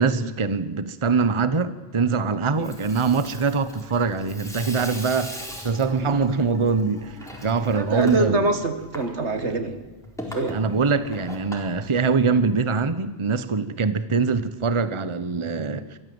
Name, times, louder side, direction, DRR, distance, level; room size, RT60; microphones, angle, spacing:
voice 1, 0.0-7.1 7.4-8.5 10.5-16.0, right 4 dB, 30° right, 13 dB, 1.0 m, -23 dB
Water tap faucet / Sink (filling or washing), 2.4-12.6, equal, 5° left, 4.2 m, -40 dB
voice 2, 7.6-9.8 10.3-10.6, right 2 dB, 85° right, 8 dB, 2.2 m, -25 dB
23.5 x 14.5 x 7.8 m, 1.2 s
omnidirectional pair, 1.1 m